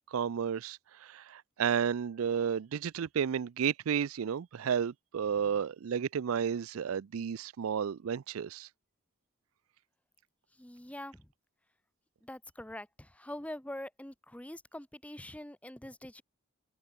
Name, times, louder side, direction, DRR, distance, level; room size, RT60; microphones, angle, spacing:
voice 1, 0.1-8.7, right 7 dB, 85° right, 0.4 m, -32 dB
voice 2, 10.6-11.3 12.2-16.2, left 1 dB, 5° left, 1.0 m, -44 dB
open air
head